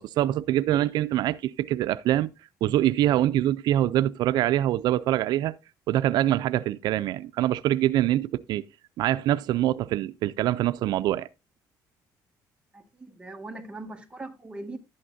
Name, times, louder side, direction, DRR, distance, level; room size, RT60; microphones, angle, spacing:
voice 1, 0.0-2.3 2.6-5.5 5.9-8.6 9.0-11.3, right 13 dB, 75° right, 0.4 m, -24 dB
voice 2, 12.7-14.8, right 2 dB, 15° right, 1.6 m, -40 dB
11.5 x 8.7 x 2.6 m
cardioid pair, 120°, 7 cm